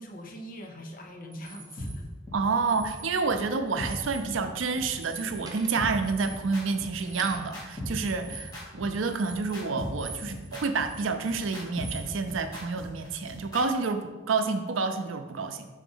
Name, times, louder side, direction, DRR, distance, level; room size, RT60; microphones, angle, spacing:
voice 1, 0.0-2.1, equal, 45° left, 2 dB, 0.8 m, -42 dB
sound 1, 1.3-1.9 2.6-3.4 3.7-4.3 4.6-10.5 10.8-12.1, right 4 dB, 20° right, 0.6 m, -45 dB
sound 2, 1.8-1.9 2.3-2.4 2.8-2.9 3.3-3.4 3.8-3.9 4.3-4.4 4.8-4.9 5.3-5.4 5.8-13.6, left 1 dB, 20° left, 1.9 m, -38 dB
voice 2, 2.3-15.7, right 4 dB, 85° right, 8 dB, 0.5 m, -29 dB
5.1 x 3.8 x 5.5 m, 1.2 s
head